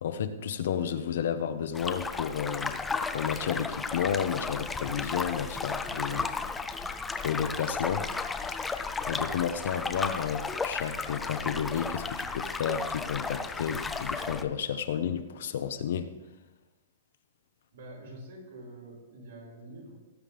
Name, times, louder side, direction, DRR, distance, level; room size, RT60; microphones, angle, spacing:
voice 1, 0.0-6.3 7.2-8.1 8.5-8.6 9.0-16.1, left 8 dB, 55° left, 10 dB, 0.8 m, -32 dB
sound 1, 1.7-14.4, left 4 dB, 5° left, 0.4 m, -34 dB
voice 2, 17.7-20.0, right 1 dB, 60° right, -1 dB, 4.6 m, -46 dB
18.5 x 9.1 x 3.5 m, 1.1 s
hypercardioid pair, 180°, 0 cm